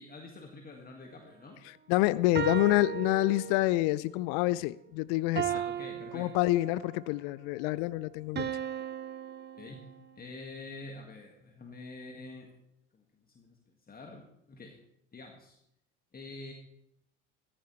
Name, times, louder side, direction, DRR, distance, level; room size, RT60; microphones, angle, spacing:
voice 1, 0.0-1.6 2.3-2.9 5.5-6.3 9.6-9.8 10.2-12.5 12.9-13.6 13.9-14.8 15.1-15.6 16.1-16.5, left 3 dB, 25° left, 2.0 m, -47 dB
voice 2, 1.7-5.5 6.1-8.5, left 18 dB, 55° left, 0.5 m, -27 dB
sound 1, 2.3-3.9 5.4-7.0 8.4-10.3, right 10 dB, 30° right, 0.8 m, -36 dB
15.5 x 14.0 x 3.3 m
hypercardioid pair, 70°, 37 cm